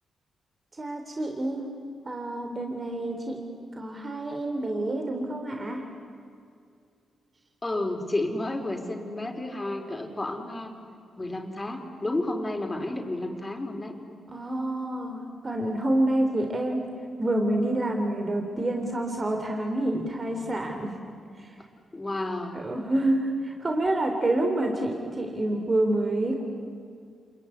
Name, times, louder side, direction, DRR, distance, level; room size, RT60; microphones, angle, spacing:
voice 1, 0.8-1.7 2.0-3.4 3.8-5.8 14.3-16.8 17.2-20.9 21.4-21.5 22.5-26.4, right 1 dB, 35° right, 3 dB, 3.4 m, -28 dB
voice 2, 7.6-10.7 11.2-13.9 21.9-22.7, left 2 dB, 25° left, 4 dB, 4.5 m, -31 dB
28.0 x 21.5 x 9.9 m, 2.4 s
supercardioid pair, 55°, 0 cm